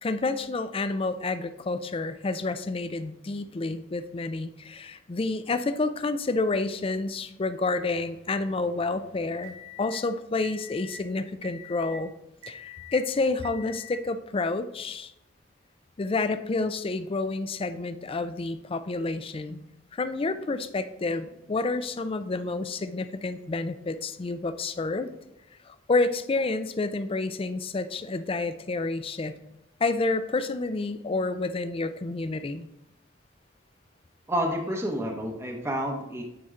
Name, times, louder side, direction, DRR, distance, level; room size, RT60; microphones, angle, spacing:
voice 1, 0.0-9.5 9.8-12.1 12.5-15.1 16.0-19.6 19.9-25.1 25.7-29.3 29.8-32.7, left 3 dB, 30° left, 12 dB, 0.4 m, -29 dB
sound 1, 7.9-10.0 10.4-11.0 11.4-12.0 12.4-13.0 13.4-14.0, left 3 dB, 85° right, 1.7 m, -46 dB
voice 2, 34.3-36.2, equal, 15° right, 1 dB, 0.8 m, -29 dB
9.4 x 4.3 x 3.7 m, 0.88 s
head